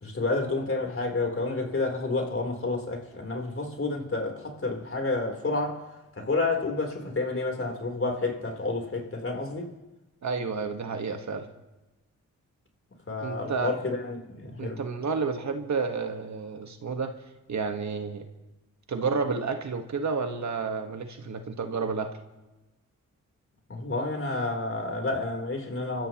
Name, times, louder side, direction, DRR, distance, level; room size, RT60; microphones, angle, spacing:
voice 1, 0.0-5.9 6.2-9.7 13.1-14.8 23.7-26.1, left 3 dB, 45° left, 3.8 m, -30 dB
voice 2, 10.2-11.5 13.2-13.7 14.6-17.1 17.5-18.3 18.9-22.1, right 4 dB, 60° right, 1.6 m, -30 dB
26.0 x 14.0 x 3.1 m
cardioid pair, 50°, 32 cm